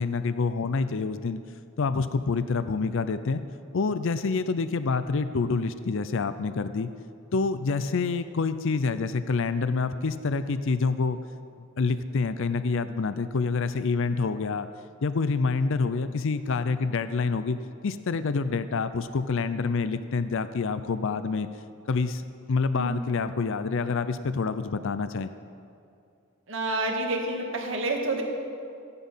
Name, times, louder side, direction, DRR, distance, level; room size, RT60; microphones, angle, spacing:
voice 1, 0.0-1.4 1.8-3.4 3.7-6.9 7.3-11.2 11.8-14.7 15.0-17.6 17.8-21.5 21.9-25.3, left 4 dB, 65° left, 12 dB, 0.5 m, -27 dB
voice 2, 26.5-28.2, right 2 dB, 65° right, 1 dB, 2.0 m, -28 dB
15.5 x 10.5 x 5.6 m, 2.4 s
head